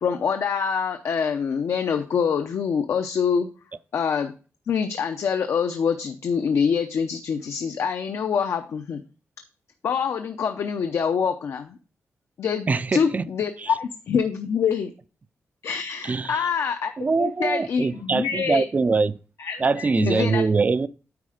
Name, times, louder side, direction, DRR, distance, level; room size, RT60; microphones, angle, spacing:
voice 1, 0.0-3.5 3.9-4.3 4.7-9.0 9.8-11.8 12.4-14.9 15.6-18.6 19.4-20.4, left 6 dB, 75° left, 0.7 m, -25 dB
voice 2, 12.7-13.3 13.6-13.7 16.0-16.5 17.0-19.1 19.6-20.9, right 4 dB, 30° right, 0.4 m, -23 dB
9.5 x 4.3 x 4.9 m
wide cardioid pair, 125°, 5 cm